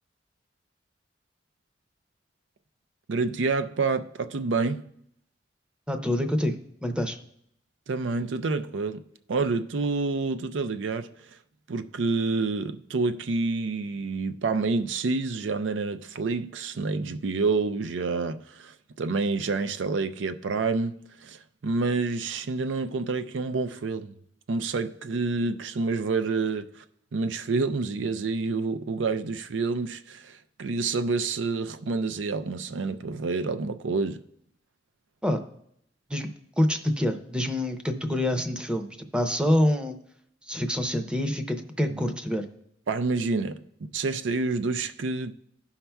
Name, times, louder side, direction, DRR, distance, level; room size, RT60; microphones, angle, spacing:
voice 1, 3.1-4.9 7.9-9.0 9.3-11.1 11.7-24.1 24.5-26.8 27.1-34.2 41.9-42.0 42.9-45.3, right 4 dB, 85° right, 0.5 m, -28 dB
voice 2, 5.9-6.5 6.8-7.2 35.2-35.4 36.1-36.3 36.6-40.0 40.5-42.5, left 1 dB, 5° right, 0.6 m, -26 dB
16.0 x 5.6 x 2.3 m
head